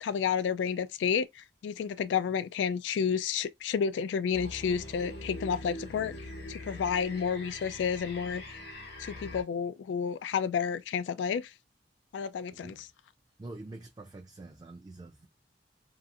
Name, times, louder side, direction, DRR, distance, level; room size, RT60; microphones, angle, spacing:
voice 1, 0.0-6.1 6.5-8.6 9.0-11.5 12.1-12.9, left 7 dB, 90° left, 0.3 m, -31 dB
sound 1, 4.3-9.4, left 1 dB, 65° left, 0.9 m, -43 dB
voice 2, 12.5-12.8 13.4-15.3, right 2 dB, 25° right, 0.4 m, -46 dB
2.8 x 2.4 x 2.4 m
head